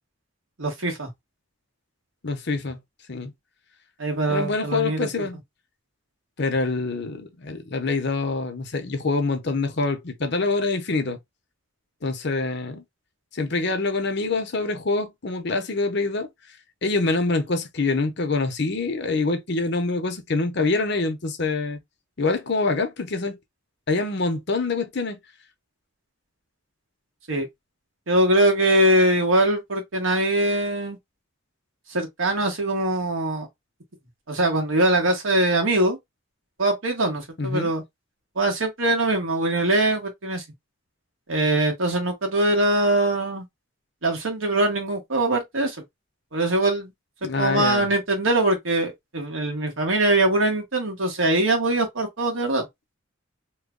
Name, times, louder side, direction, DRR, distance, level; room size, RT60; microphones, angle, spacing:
voice 1, 0.6-1.1 4.0-5.3 27.3-27.5 28.1-31.0 31.9-33.5 34.3-36.0 36.6-37.8 38.3-40.4 41.3-43.4 44.0-45.8 46.3-46.9 47.4-52.6, right 1 dB, 75° right, 1.4 m, -22 dB
voice 2, 2.2-2.8 3.1-3.3 4.3-5.4 6.4-11.2 12.0-12.8 13.3-16.3 16.8-21.8 22.2-23.4 23.9-25.2 37.4-37.7 47.2-47.9, left 3 dB, 55° left, 0.8 m, -25 dB
3.1 x 2.2 x 3.7 m
head